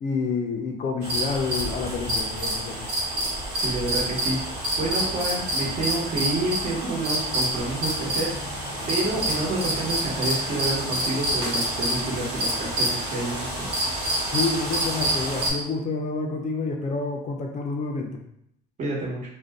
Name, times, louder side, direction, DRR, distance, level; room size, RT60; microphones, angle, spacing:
voice 1, 0.0-2.9 14.3-18.2, left 4 dB, 40° left, 2 dB, 0.5 m, -28 dB
sound 1, 1.0-15.5, right 1 dB, 70° right, 1.2 m, -27 dB
voice 2, 3.6-4.4 4.8-8.6 8.9-13.5 18.8-19.2, right 2 dB, 45° right, -4 dB, 1.2 m, -28 dB
2.5 x 2.1 x 3.5 m, 0.73 s
cardioid pair, 115°, 17 cm